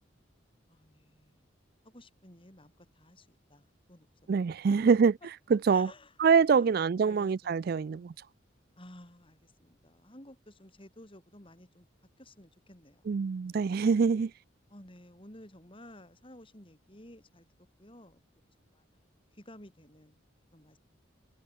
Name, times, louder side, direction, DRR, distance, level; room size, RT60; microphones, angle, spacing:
voice 1, 0.7-1.5 1.8-4.1 4.4-4.8 5.7-6.2 6.5-6.7 7.0-8.1 8.8-11.9 12.2-13.1 13.4-13.6 14.7-18.8 19.3-20.2 20.5-20.8, left 1 dB, 25° left, 4.8 m, -54 dB
voice 2, 4.3-5.1 5.5-5.9 6.2-8.1 13.1-14.3, right 5 dB, 50° right, 0.3 m, -24 dB
head